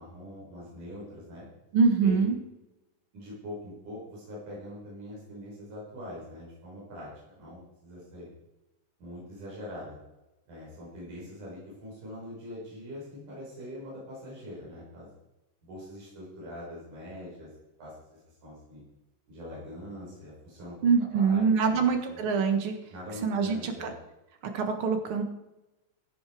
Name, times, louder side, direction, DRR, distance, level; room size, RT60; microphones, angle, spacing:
voice 1, 0.0-1.5 2.0-2.3 3.1-8.3 9.0-10.0 10.5-15.1 15.6-17.5 17.8-18.8 19.3-20.8 21.1-22.2 22.9-23.9, left 1 dB, 65° right, -6 dB, 7.6 m, -43 dB
voice 2, 1.7-2.4 20.8-22.7 23.2-23.9 24.5-25.2, right 5 dB, 50° right, 5 dB, 2.0 m, -24 dB
16.0 x 9.5 x 5.0 m, 0.97 s
omnidirectional pair, 3.9 m